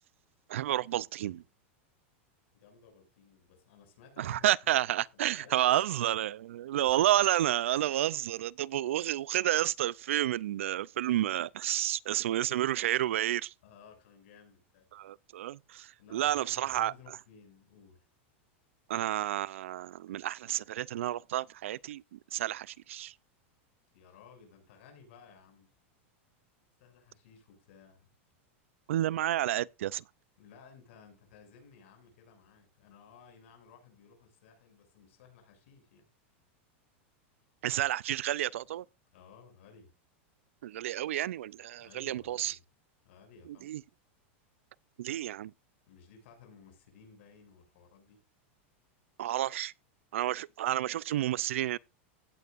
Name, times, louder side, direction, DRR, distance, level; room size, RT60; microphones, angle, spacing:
voice 1, 0.5-1.4 4.2-13.5 14.9-16.9 18.9-23.1 28.9-30.0 37.6-38.8 40.6-42.5 43.6-43.8 45.0-45.5 49.2-49.7 50.1-51.8, right 13 dB, 90° right, 0.5 m, -30 dB
voice 2, 2.5-4.5 4.7-4.8 5.1-6.2 6.8-7.2 13.6-14.9 16.0-18.1 23.9-25.7 26.8-28.1 30.4-36.1 39.1-39.9 41.7-42.6 43.0-43.7 45.9-48.2, left 6 dB, 70° left, 6.5 m, -57 dB
16.5 x 9.2 x 2.6 m
supercardioid pair, 150°, 7 cm